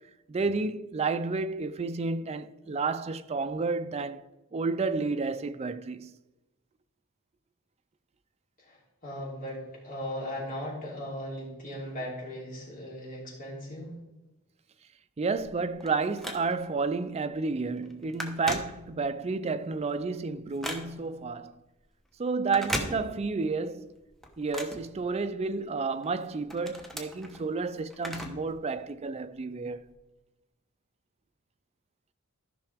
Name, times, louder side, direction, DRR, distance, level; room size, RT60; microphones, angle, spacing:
voice 1, 0.3-4.2 4.5-6.2 15.2-21.5 22.2-24.0 24.4-29.9, right 4 dB, 30° right, 0.4 m, -31 dB
voice 2, 8.7-14.0, left 1 dB, 40° left, 3.0 m, -38 dB
Telephone, 15.4-16.8 17.3-17.5 17.8-19.3 19.7-21.2 22.4-23.5 23.8-25.6 26.0-28.5 28.8-28.9 29.8-29.9, equal, ahead, 0.9 m, -38 dB
13.5 x 5.7 x 3.5 m
head